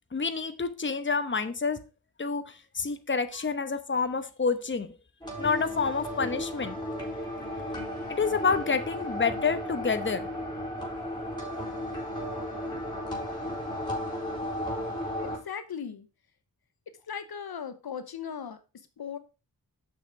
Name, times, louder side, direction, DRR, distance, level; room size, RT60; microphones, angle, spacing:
voice 1, 0.1-1.8 2.2-4.9 5.4-6.8 8.1-10.3, left 5 dB, 30° left, 1.0 m, -28 dB
sound 1, 5.2-15.4, equal, 10° left, 3.9 m, -34 dB
voice 2, 15.2-16.1 17.1-19.2, left 7 dB, 70° left, 0.9 m, -38 dB
6.9 x 6.1 x 4.9 m
wide cardioid pair, 70°, 38 cm